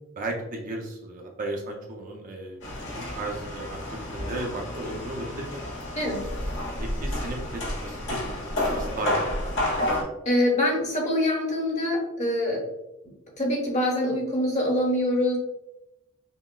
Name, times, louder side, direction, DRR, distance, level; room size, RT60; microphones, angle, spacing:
voice 1, 0.2-2.6 3.2-5.6 6.8-9.6, right 2 dB, 35° right, 1 dB, 0.5 m, -35 dB
sound 1, 2.6-10.0, left 1 dB, 55° left, 1.1 m, -30 dB
voice 2, 10.2-12.6 13.4-15.4, left 1 dB, 30° left, -2 dB, 1.0 m, -24 dB
5.6 x 2.0 x 2.2 m, 0.92 s
head